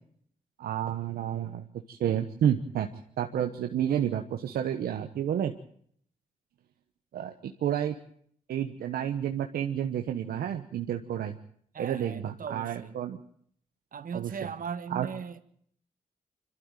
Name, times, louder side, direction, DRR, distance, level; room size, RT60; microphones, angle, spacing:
voice 1, 0.6-2.9 3.2-5.5 7.1-8.0 8.5-11.4 11.8-13.2 14.1-14.3 14.9-15.1, right 10 dB, 85° right, 1.2 m, -30 dB
voice 2, 11.7-13.0 13.9-15.4, right 6 dB, 65° right, 1.8 m, -38 dB
26.0 x 12.5 x 9.2 m
supercardioid pair, 50°, 15 cm